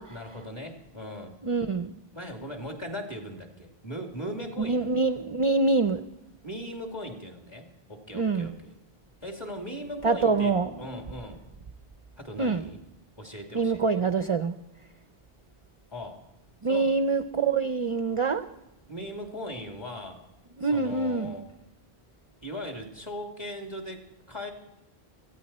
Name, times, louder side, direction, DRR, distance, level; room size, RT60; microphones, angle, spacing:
voice 1, 0.1-1.4 2.1-4.9 6.4-8.7 9.2-11.4 12.2-12.8 13.2-14.0 15.9-16.2 16.7-16.9 18.9-20.2 20.6-21.5 22.4-24.5, equal, 25° left, 2 dB, 2.6 m, -38 dB
voice 2, 1.4-1.9 4.6-6.1 8.1-8.6 10.0-11.0 12.4-12.7 13.5-14.5 16.6-18.4 20.6-21.3, right 4 dB, 40° right, 10 dB, 0.5 m, -25 dB
17.5 x 15.5 x 4.2 m, 0.95 s
omnidirectional pair, 1.0 m